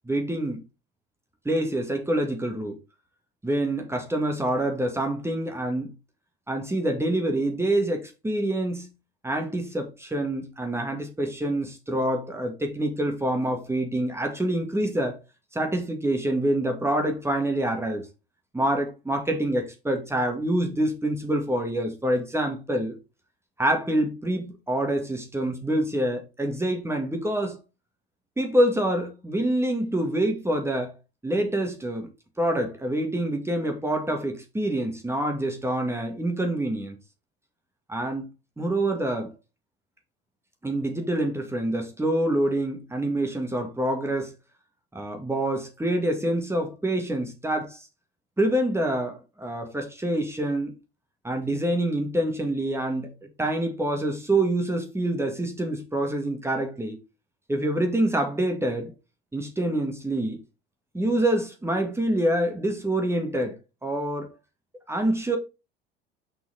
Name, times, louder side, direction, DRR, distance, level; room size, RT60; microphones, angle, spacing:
voice 1, 0.1-0.6 1.5-2.8 3.4-5.9 6.5-8.9 9.2-15.2 15.5-18.1 18.5-23.0 23.6-27.6 28.4-30.9 31.2-32.1 32.4-37.0 37.9-38.3 38.6-39.3 40.6-44.3 44.9-47.8 48.4-50.7 51.2-53.1 53.4-57.0 57.5-58.9 59.3-60.4 60.9-64.4 64.9-65.4, right 1 dB, 10° right, 2.0 m, -26 dB
6.7 x 5.6 x 4.1 m
figure-of-eight pair, 70°, 31 cm